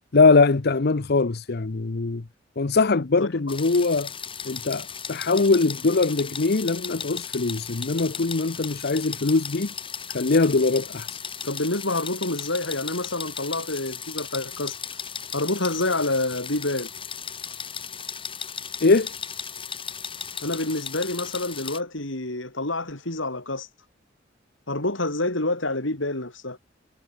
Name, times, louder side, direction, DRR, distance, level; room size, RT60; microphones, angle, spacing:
voice 1, 0.1-2.2 2.6-4.1 4.4-9.7 10.1-11.2 18.8-19.1, left 3 dB, 55° left, 0.8 m, -21 dB
voice 2, 3.2-3.6 11.4-14.8 15.3-16.9 20.4-23.7 24.7-26.6, left 2 dB, 75° left, 5.2 m, -28 dB
sound 1, 3.5-21.8, left 7 dB, 30° left, 3.2 m, -36 dB
head